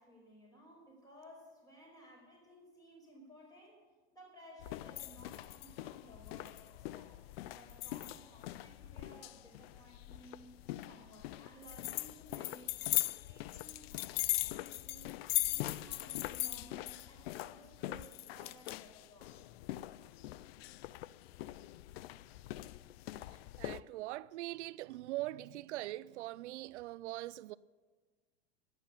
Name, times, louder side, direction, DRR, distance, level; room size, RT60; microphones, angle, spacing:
voice 1, 0.0-3.8 4.1-7.2 7.5-10.5 10.9-15.1 15.4-19.4, equal, 10° left, 5.2 m, -57 dB
sound 1, 4.6-23.8, left 17 dB, 60° left, 0.5 m, -40 dB
voice 2, 23.6-27.5, right 17 dB, 85° right, 0.5 m, -42 dB
11.5 x 9.1 x 9.8 m
supercardioid pair, 150°, 34 cm